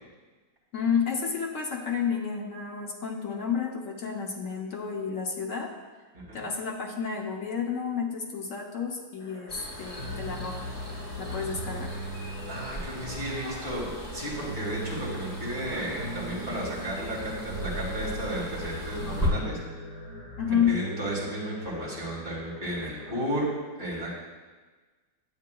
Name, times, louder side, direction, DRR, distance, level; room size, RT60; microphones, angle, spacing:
voice 1, 0.7-5.7 6.3-10.8 11.2-12.0 20.4-20.8, left 7 dB, 55° left, 0 dB, 1.0 m, -30 dB
voice 2, 6.1-6.4 12.5-19.6 20.5-23.5 23.8-24.2, right 1 dB, 30° right, -6 dB, 2.5 m, -33 dB
sound 1, 9.2-23.5, left 4 dB, 30° left, 1.3 m, -47 dB
sound 2, 9.5-19.3, equal, 10° left, 1.7 m, -37 dB
sound 3, 10.0-21.9, right 1 dB, 70° right, 1.7 m, -40 dB
10.5 x 8.5 x 2.3 m, 1.3 s
omnidirectional pair, 1.9 m